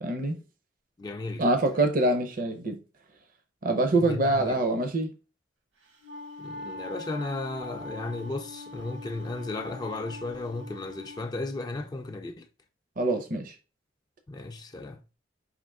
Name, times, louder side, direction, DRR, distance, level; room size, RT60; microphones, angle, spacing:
voice 1, 0.0-0.4 1.4-2.8 3.6-5.1 13.0-13.6, right 2 dB, 50° right, 0.6 m, -25 dB
voice 2, 1.0-1.5 4.0-4.5 6.4-12.5 14.3-15.0, left 2 dB, 20° left, 0.4 m, -35 dB
Wind instrument woodwind instrument, 5.8-11.3, left 2 dB, 70° right, 1.2 m, -42 dB
5.1 x 2.9 x 3.5 m
head